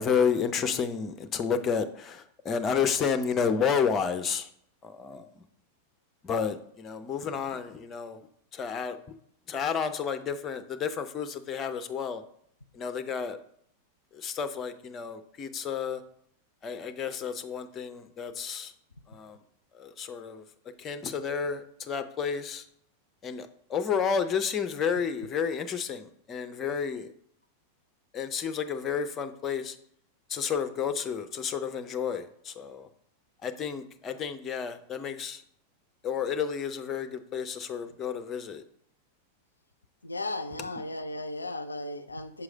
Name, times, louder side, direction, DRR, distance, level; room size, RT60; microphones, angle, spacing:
voice 1, 0.0-4.5 4.8-5.2 6.2-8.2 8.5-9.0 9.5-12.2 12.7-13.4 14.1-16.0 16.6-18.7 19.1-19.4 19.7-20.4 20.8-22.6 23.2-27.1 28.1-29.8 30.3-32.9 33.4-35.4 36.0-38.6, left 6 dB, 25° left, 10 dB, 0.5 m, -31 dB
voice 2, 40.0-42.4, left 2 dB, 80° left, 11 dB, 0.3 m, -36 dB
5.6 x 4.8 x 5.1 m, 0.67 s
figure-of-eight pair, 90°, 0 cm